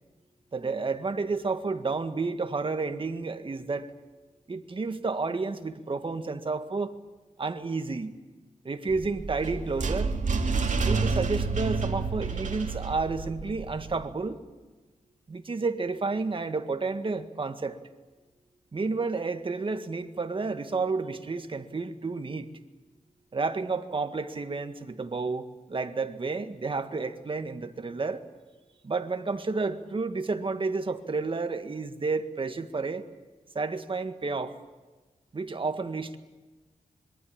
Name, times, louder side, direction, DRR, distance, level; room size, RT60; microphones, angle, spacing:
voice 1, 0.5-3.9 4.5-7.0 7.4-8.2 8.6-10.1 10.8-14.4 15.3-17.8 18.7-22.5 23.3-28.2 28.8-33.0 33.6-34.6 35.3-36.2, right 4 dB, 40° right, 1.8 m, -31 dB
sound 1, 8.9-14.0, right 4 dB, 65° right, 2.5 m, -29 dB
26.0 x 23.0 x 8.8 m
wide cardioid pair, 110°, 14 cm